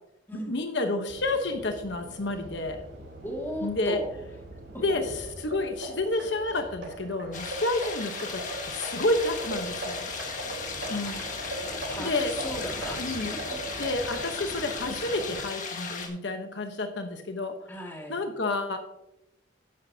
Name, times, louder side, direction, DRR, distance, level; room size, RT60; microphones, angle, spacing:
voice 1, 0.3-2.8 3.6-4.0 4.8-5.1 5.5-10.1 10.9-11.2 12.0-12.3 13.0-13.3 13.8-17.5 18.1-18.8, left 2 dB, 70° left, 5 dB, 1.0 m, -30 dB
sound 1, 1.1-15.4, right 1 dB, 70° right, 3.2 m, -45 dB
voice 2, 3.2-4.1 4.7-4.8 10.8-11.2 11.5-13.0 13.3-13.6 17.7-18.2, equal, 10° left, -1 dB, 2.2 m, -37 dB
sound 2, 5.3-14.3, right 2 dB, 90° right, 4.0 m, -39 dB
sound 3, 7.3-16.1, left 5 dB, 40° left, 1.6 m, -36 dB
12.0 x 9.7 x 2.8 m, 0.85 s
head